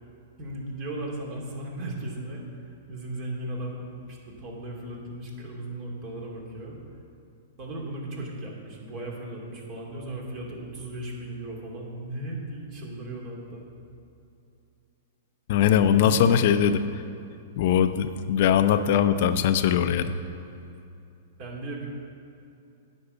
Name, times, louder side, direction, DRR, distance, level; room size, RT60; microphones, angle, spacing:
voice 1, 0.4-6.8 7.6-13.7 15.9-16.3 21.4-21.9, right 1 dB, 45° right, -1 dB, 2.6 m, -36 dB
voice 2, 15.5-16.8 17.6-20.1, left 9 dB, 55° left, 10 dB, 0.6 m, -21 dB
9.8 x 5.4 x 8.1 m, 2.6 s
hypercardioid pair, 125°, 0 cm